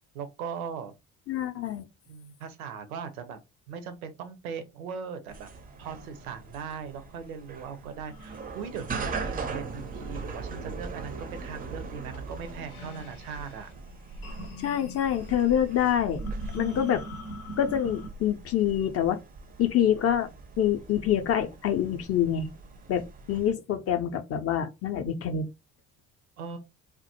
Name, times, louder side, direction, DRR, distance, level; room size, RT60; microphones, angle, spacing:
voice 1, 0.1-0.9 2.1-3.4 3.7-5.5 5.8-13.7 26.4-26.6, right 6 dB, 80° right, 0.6 m, -39 dB
voice 2, 1.3-1.8 14.6-16.2 16.5-17.0 17.6-19.2 19.6-20.3 20.6-22.5 22.9-25.5, left 9 dB, 35° left, 0.5 m, -26 dB
sound 1, 5.3-23.5, right 4 dB, 20° right, 0.4 m, -40 dB
sound 2, 8.1-18.1, right 1 dB, 85° left, 0.6 m, -44 dB
2.1 x 2.1 x 2.8 m
figure-of-eight pair, 50°, 43 cm